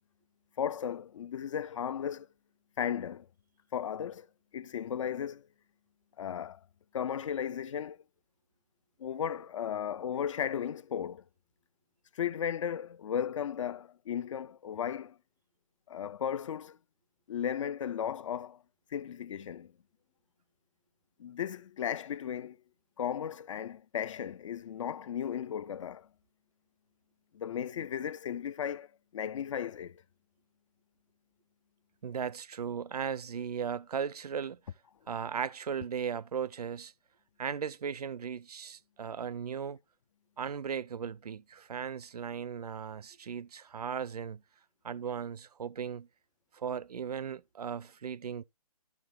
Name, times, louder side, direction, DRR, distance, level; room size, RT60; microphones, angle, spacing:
voice 1, 0.6-2.3 2.8-3.3 3.7-4.3 4.5-5.5 6.2-6.6 6.9-8.0 9.0-11.2 12.1-15.2 15.9-16.8 17.3-18.6 18.9-19.7 21.2-22.6 23.0-26.1 27.3-28.9 29.1-30.0, left 9 dB, 55° left, 0.5 m, -35 dB
voice 2, 32.0-34.6 35.1-36.9 37.4-39.8 40.4-44.4 44.8-46.1 46.5-48.4, right 7 dB, 80° right, 0.5 m, -37 dB
13.0 x 6.0 x 3.0 m
hypercardioid pair, 145°, 20 cm